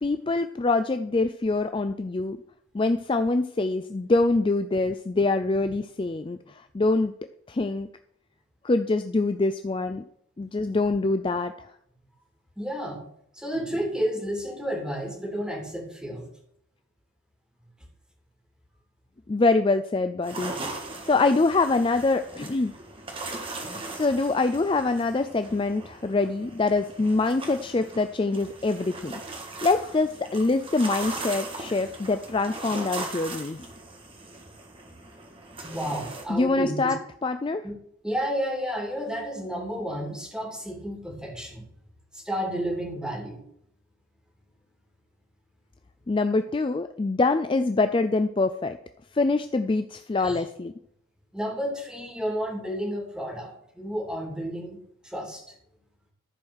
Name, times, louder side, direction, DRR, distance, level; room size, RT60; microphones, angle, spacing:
voice 1, 0.0-2.4 2.7-7.1 7.5-7.9 8.6-10.0 10.4-11.7 19.3-20.5 21.1-22.7 23.6-29.2 29.6-33.7 36.3-37.7 46.1-48.8 49.1-50.7, left 3 dB, 25° left, 9 dB, 0.4 m, -25 dB
voice 2, 12.6-13.1 13.3-16.3 23.8-23.9 35.6-36.9 37.6-37.7 38.0-41.7 42.1-43.5 50.2-50.4 51.3-55.4, equal, 5° right, -1 dB, 2.8 m, -31 dB
sound 1, 20.2-36.2, right 2 dB, 25° right, 1.6 m, -39 dB
14.0 x 4.8 x 6.3 m, 0.72 s
head